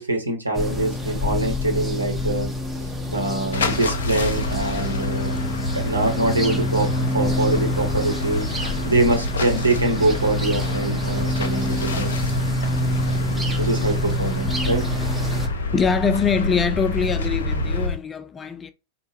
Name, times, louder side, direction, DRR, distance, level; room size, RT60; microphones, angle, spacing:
voice 1, 0.0-2.5 3.1-6.9 7.1-8.5 8.8-12.1 13.6-14.8, right 2 dB, 85° right, 1.0 m, -24 dB
sound 1, 0.5-15.5, left 1 dB, 5° right, 0.7 m, -27 dB
sound 2, 3.5-17.9, left 2 dB, 65° left, 0.6 m, -28 dB
sound 3, 7.7-18.0, left 1 dB, 70° right, 0.5 m, -34 dB
voice 2, 15.7-18.7, left 6 dB, 20° left, 0.4 m, -23 dB
4.3 x 2.1 x 3.3 m
figure-of-eight pair, 90°, 0 cm